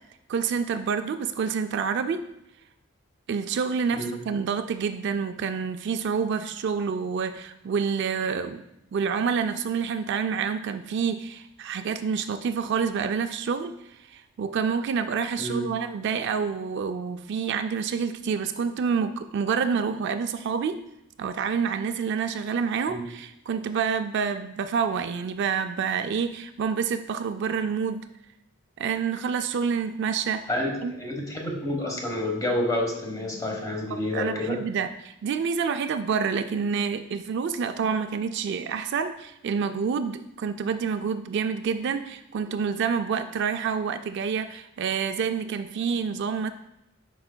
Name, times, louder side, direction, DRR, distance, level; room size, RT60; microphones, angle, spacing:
voice 1, 0.3-2.2 3.3-8.6 8.9-13.7 14.1-20.8 21.2-28.1 28.8-30.5 30.8-31.0 33.9-46.5, right 6 dB, 55° right, 9 dB, 0.3 m, -28 dB
voice 2, 30.5-34.6, left 1 dB, 20° left, 0 dB, 1.1 m, -29 dB
8.7 x 5.5 x 2.2 m, 0.85 s
head